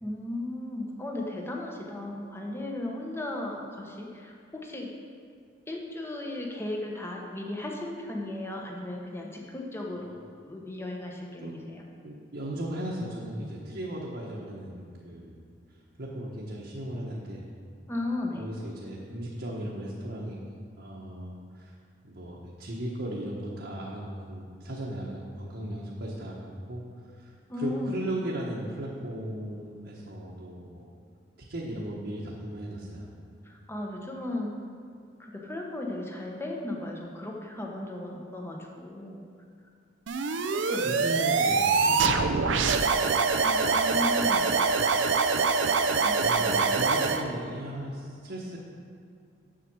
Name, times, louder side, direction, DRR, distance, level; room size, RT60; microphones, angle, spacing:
voice 1, 0.0-4.9 5.7-11.8 17.9-18.5 27.5-28.0 33.4-34.6 35.2-39.3 40.5-41.1 43.4-44.5 46.0-46.8, left 1 dB, 15° left, 0 dB, 1.1 m, -36 dB
voice 2, 12.0-15.4 16.0-17.4 18.4-20.4 20.8-21.7 22.0-26.8 27.2-30.9 31.5-33.1 40.8-42.2 43.7-43.8 46.3-48.6, right 1 dB, 60° right, -5 dB, 1.2 m, -36 dB
sound 1, 40.1-47.2, right 4 dB, 80° right, 0.6 m, -24 dB
7.6 x 7.5 x 6.1 m, 2.3 s
head